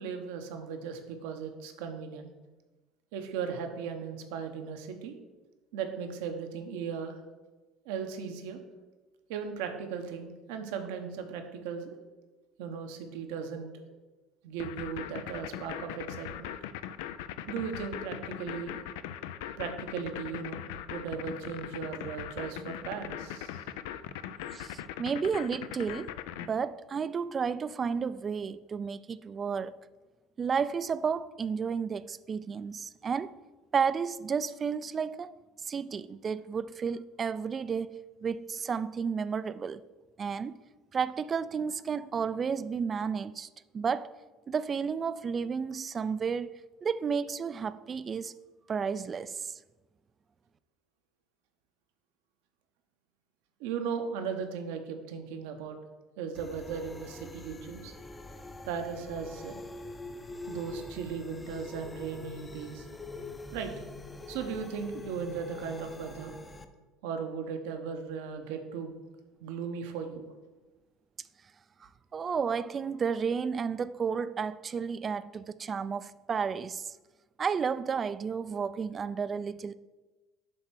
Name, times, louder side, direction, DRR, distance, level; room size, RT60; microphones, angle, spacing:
voice 1, 0.0-2.3 3.1-5.2 5.7-7.2 7.8-8.6 9.3-12.0 12.6-13.9 14.4-16.5 17.5-18.8 19.6-23.6 53.6-55.8 56.2-57.9 58.7-59.6 60.5-62.9 63.5-63.8 64.3-66.4 67.0-69.0 69.4-70.2, right 6 dB, 80° right, 0.9 m, -37 dB
sound 1, 14.6-26.5, left 11 dB, 80° left, 0.4 m, -39 dB
voice 2, 24.5-26.1 26.5-29.8 30.4-33.3 33.7-35.3 35.7-39.8 40.2-40.6 40.9-43.5 43.7-44.2 44.5-48.4 48.7-49.5 71.8-76.9 77.4-79.7, right 6 dB, 35° right, 0.3 m, -32 dB
sound 2, 56.3-66.6, left 2 dB, 20° left, 0.6 m, -45 dB
7.5 x 3.2 x 6.1 m
supercardioid pair, 85°, 0 cm